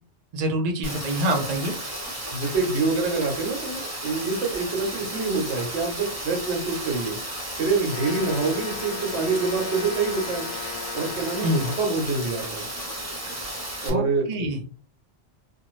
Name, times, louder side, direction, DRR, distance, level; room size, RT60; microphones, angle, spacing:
voice 1, 0.3-1.7 11.4-11.7 13.9-14.6, equal, 50° right, 3 dB, 0.5 m, -26 dB
Rain, 0.8-13.9, right 1 dB, 15° right, 0.8 m, -34 dB
voice 2, 2.3-7.2 7.6-10.5 10.9-12.7 13.8-14.5, right 4 dB, 80° right, 3 dB, 1.1 m, -26 dB
Brass instrument, 7.8-11.9, left 8 dB, 70° left, 0.9 m, -37 dB
2.5 x 2.3 x 3.0 m, 0.39 s
omnidirectional pair, 1.1 m